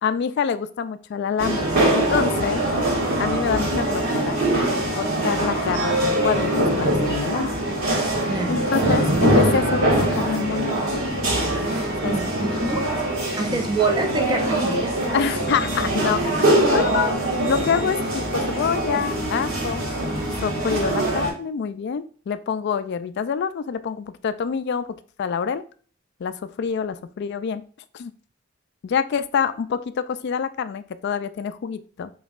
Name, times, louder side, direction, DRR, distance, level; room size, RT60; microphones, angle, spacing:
voice 1, 0.0-2.6 3.2-4.5 4.9-7.5 8.5-10.8 12.0-12.2 13.5-13.6 15.1-17.1 17.5-19.8 20.4-24.9 25.2-25.6 26.2-27.6 27.9-28.1 28.8-32.1, left 6 dB, 55° left, 12 dB, 0.3 m, -26 dB
sound 1, 1.4-21.3, right 1 dB, 70° right, 1.7 m, -23 dB
voice 2, 8.2-8.6 12.0-12.8 13.4-14.9, right 3 dB, 20° right, 4 dB, 0.6 m, -26 dB
5.2 x 2.9 x 2.4 m, 0.43 s
head